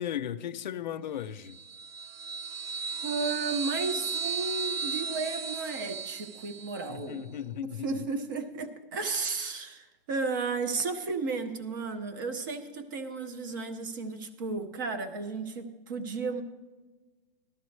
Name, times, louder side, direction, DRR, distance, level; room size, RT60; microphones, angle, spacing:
voice 1, 0.0-1.6 6.9-8.1, left 10 dB, 50° left, 0.6 m, -36 dB
sound 1, 1.5-6.9, right 6 dB, 85° right, 0.5 m, -35 dB
voice 2, 3.0-7.5 7.8-16.4, right 4 dB, 20° right, 0.5 m, -33 dB
14.5 x 13.0 x 3.2 m
hypercardioid pair, 170°, 29 cm